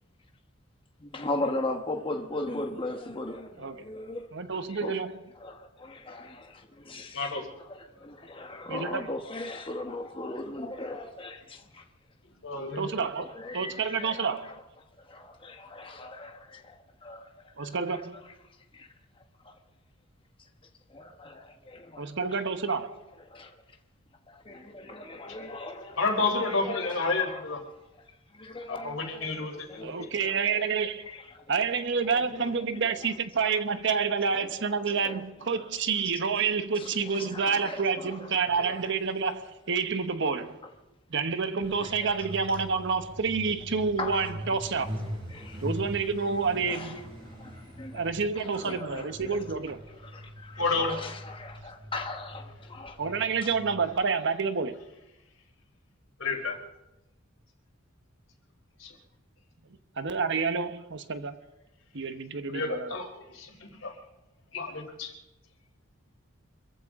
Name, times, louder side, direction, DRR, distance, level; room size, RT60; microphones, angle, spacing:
voice 1, 1.0-5.0 5.3-11.8 13.0-14.6 15.0-19.6 20.4-22.5 22.8-23.8 24.3-27.5 28.0-30.8 31.0-31.5 32.0-33.6 33.8-33.9 34.3-35.7 36.3-36.5 36.7-38.9 40.6-40.7 41.8-42.7 44.0-44.9 45.3-45.6 46.6-48.1 48.3-49.6 49.9-53.6, left 2 dB, 25° left, 1.3 m, -40 dB
voice 2, 4.3-5.1 8.7-9.0 12.8-13.3 13.5-14.5 17.6-18.1 22.0-23.0 29.8-31.1 31.5-40.6 41.1-45.0 45.6-47.0 47.9-49.8 53.0-54.8 60.0-61.4 61.9-63.0, right 5 dB, 65° right, 1.1 m, -29 dB
voice 3, 7.1-7.5 12.4-12.9 26.0-27.6 28.7-29.9 50.6-50.9 56.2-56.6 58.8-58.9 62.5-64.0 64.5-65.1, left 3 dB, 75° left, 3.9 m, -30 dB
Truck, 41.6-53.9, equal, 25° right, 7.5 m, -42 dB
26.0 x 15.0 x 3.7 m
head